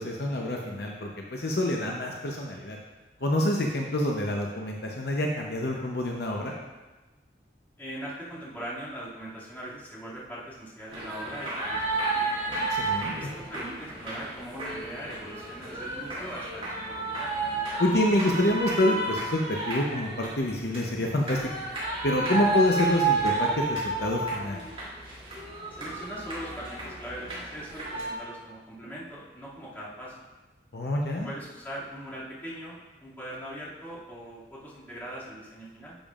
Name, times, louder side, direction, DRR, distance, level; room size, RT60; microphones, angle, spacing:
voice 1, 0.0-2.8 3.2-6.5 12.5-13.1 17.8-21.4 22.0-24.6 30.7-31.3, left 1 dB, 65° left, 0 dB, 0.8 m, -27 dB
voice 2, 7.8-12.3 13.1-17.3 25.8-30.1 31.2-36.0, equal, 10° left, -10 dB, 2.3 m, -41 dB
sound 1, 10.9-28.1, right 3 dB, 30° right, 2.8 m, -31 dB
10.5 x 7.0 x 2.5 m, 1.1 s
head